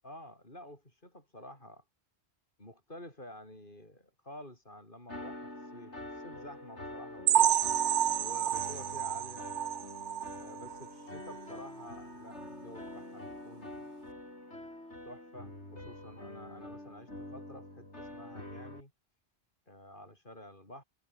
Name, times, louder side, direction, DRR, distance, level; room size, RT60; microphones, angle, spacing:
voice 1, 0.0-1.8 2.6-7.5 8.2-9.5 10.4-13.9 15.0-18.9 19.7-20.8, left 1 dB, 50° left, 8.3 m, -50 dB
sound 1, 5.1-18.8, left 1 dB, 80° left, 8.1 m, -46 dB
sound 2, 7.3-10.9 11.3-11.4 11.8-11.9 12.4-12.5, right 10 dB, 55° right, 0.6 m, -29 dB
omnidirectional pair, 1.1 m